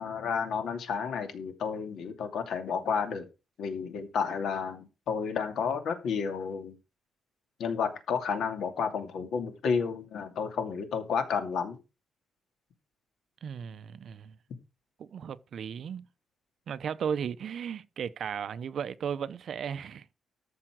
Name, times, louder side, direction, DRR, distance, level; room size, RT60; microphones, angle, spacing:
voice 1, 0.0-3.3 3.6-6.8 7.6-11.8, left 6 dB, 70° left, 2.6 m, -31 dB
voice 2, 13.4-14.3 15.0-16.0 16.7-20.1, right 7 dB, 55° right, 0.7 m, -35 dB
13.5 x 5.7 x 6.3 m
cardioid pair, 150°, 0 cm